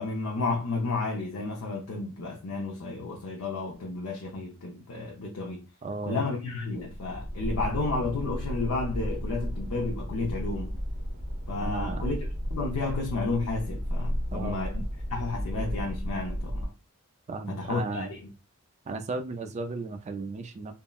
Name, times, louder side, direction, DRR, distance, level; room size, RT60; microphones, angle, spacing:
voice 1, 0.0-5.6 6.0-10.8 11.5-12.2 12.5-14.8 15.1-16.7 17.5-18.2, left 3 dB, 80° left, 0.5 m, -32 dB
voice 2, 5.8-6.3 11.6-12.1 14.3-14.6 17.3-18.1 18.9-20.7, right 3 dB, 30° right, 0.3 m, -35 dB
sound 1, 6.8-16.7, equal, 50° right, 1.2 m, -33 dB
3.6 x 2.0 x 2.2 m
head